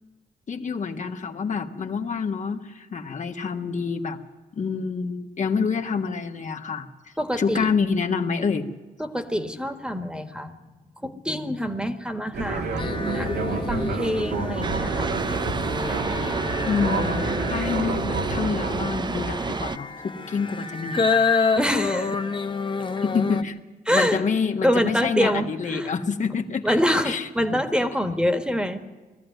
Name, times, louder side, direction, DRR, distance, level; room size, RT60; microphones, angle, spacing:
voice 1, 0.5-4.2 4.5-6.9 7.4-8.6 16.7-21.3 23.0-23.6 23.9-26.8 27.0-27.2, left 5 dB, 50° left, 4 dB, 1.7 m, -27 dB
voice 2, 7.2-7.7 9.0-10.6 11.0-15.1 21.6-22.2 23.9-24.2 24.6-25.9 26.6-28.8, equal, 5° right, 7 dB, 1.7 m, -26 dB
Fixed-wing aircraft airplane, 12.3-18.9, right 4 dB, 85° right, 2.6 m, -29 dB
sound 1, 12.8-23.4, left 4 dB, 30° left, 0.9 m, -28 dB
sound 2, 14.6-19.8, right 4 dB, 25° right, 0.6 m, -30 dB
21.0 x 14.5 x 9.3 m, 1.2 s
cardioid pair, 115°, 16 cm